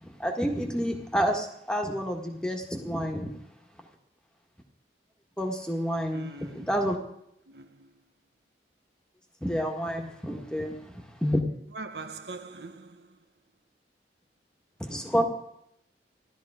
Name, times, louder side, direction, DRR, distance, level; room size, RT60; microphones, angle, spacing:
voice 1, 0.0-3.3 5.4-7.0 9.4-11.4 14.8-15.2, equal, 5° left, 1.6 m, -29 dB
voice 2, 6.1-6.7 7.5-7.9 11.7-13.2, right 3 dB, 65° right, 0.9 m, -42 dB
16.0 x 12.0 x 5.0 m
head